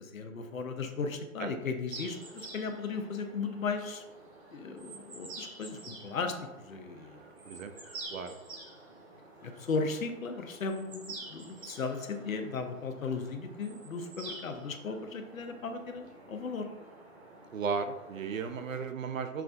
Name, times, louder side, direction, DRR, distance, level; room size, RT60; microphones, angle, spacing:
voice 1, 0.0-4.0 4.5-7.2 9.4-16.7, left 4 dB, 70° left, 6 dB, 0.8 m, -36 dB
sound 1, 1.9-18.8, right 3 dB, 45° right, 1.3 m, -49 dB
voice 2, 17.5-19.4, right 5 dB, 65° right, 8 dB, 0.6 m, -35 dB
5.9 x 2.6 x 3.4 m, 1.1 s
hypercardioid pair, 170°, 43 cm